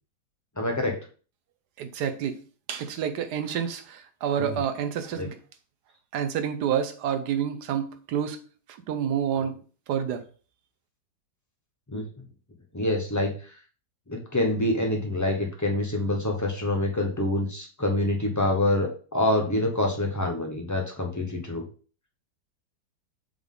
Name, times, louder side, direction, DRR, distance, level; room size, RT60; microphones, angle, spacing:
voice 1, 0.6-1.0 4.4-4.6 5.1-5.3 9.3-9.4 11.9-12.0 12.7-13.3 14.1-21.6, left 1 dB, 25° left, 0.3 m, -26 dB
voice 2, 1.8-2.4 2.7-5.4 6.1-8.4 8.7-9.6 9.9-10.2, right 8 dB, 70° right, 1.2 m, -28 dB
6.9 x 3.7 x 3.7 m
omnidirectional pair, 1.9 m